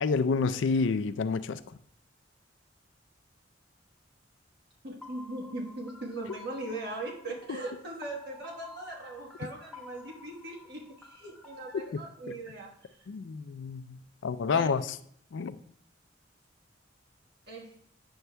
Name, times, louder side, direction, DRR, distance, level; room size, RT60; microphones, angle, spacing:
voice 1, 0.0-1.6 11.9-12.0 13.1-15.0 15.3-15.6, left 5 dB, 75° left, 12 dB, 0.4 m, -29 dB
voice 2, 4.8-12.7 14.5-14.8 17.5-17.7, right 2 dB, 60° right, -1 dB, 1.2 m, -39 dB
sound 1, 5.0-11.9, left 2 dB, 5° left, 0.8 m, -51 dB
9.3 x 7.1 x 2.2 m, 0.67 s
head